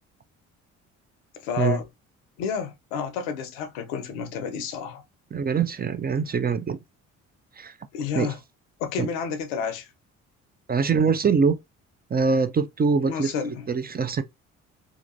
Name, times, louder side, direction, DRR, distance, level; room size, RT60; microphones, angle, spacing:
voice 1, 1.4-1.8 2.4-5.0 7.9-8.4 8.8-9.9 13.1-13.7, left 6 dB, 85° left, 0.7 m, -30 dB
voice 2, 5.3-6.8 7.6-7.7 8.2-8.3 9.0-9.1 10.7-11.6 12.1-13.3 13.7-14.2, right 5 dB, 25° right, 0.5 m, -23 dB
2.8 x 2.5 x 2.6 m
hypercardioid pair, 50°, 37 cm